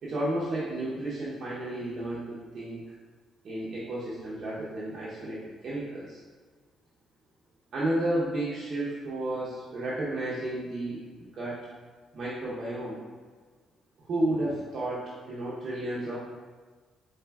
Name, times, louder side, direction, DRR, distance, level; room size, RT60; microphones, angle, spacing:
voice 1, 0.0-2.8 3.4-6.2 7.7-11.7 12.1-13.0 14.0-16.2, right 1 dB, 55° right, -7 dB, 0.8 m, -32 dB
4.3 x 3.2 x 2.3 m, 1.5 s
cardioid pair, 90°, 0 cm